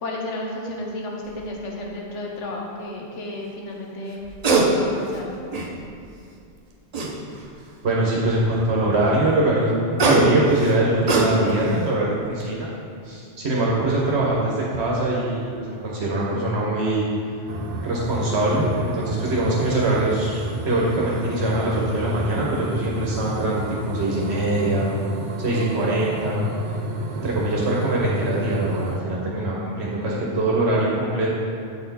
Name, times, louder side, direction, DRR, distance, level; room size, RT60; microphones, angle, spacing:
voice 1, 0.0-5.2, left 1 dB, 90° left, -1 dB, 1.2 m, -32 dB
sound 1, 1.2-1.4 4.2-4.7 5.1-5.9 6.9-7.6 9.7-11.7 12.2-12.4, right 3 dB, 40° right, 0.6 m, -22 dB
voice 2, 7.8-12.7 13.0-17.0 17.8-24.9 25.4-26.4 27.1-31.3, right 2 dB, 70° right, -4 dB, 1.1 m, -23 dB
sound 2, 17.5-29.0, right 1 dB, 85° right, 0.9 m, -31 dB
7.5 x 4.2 x 4.0 m, 2.4 s
omnidirectional pair, 1.2 m